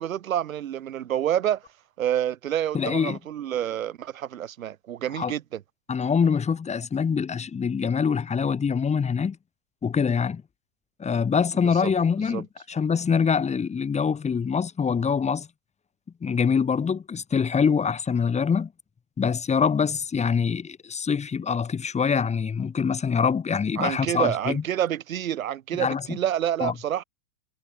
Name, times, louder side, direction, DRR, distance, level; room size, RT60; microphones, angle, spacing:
voice 1, 0.0-1.6 2.0-5.6 11.8-11.9 12.3-12.4 23.8-27.0, right 11 dB, 75° right, 4.4 m, -28 dB
voice 2, 2.7-3.2 5.2-5.3 5.9-9.4 9.8-10.4 11.0-15.5 16.2-18.7 19.2-24.6 25.7-26.2 26.6-26.7, left 6 dB, 15° left, 5.0 m, -24 dB
hypercardioid pair, 120°, 41 cm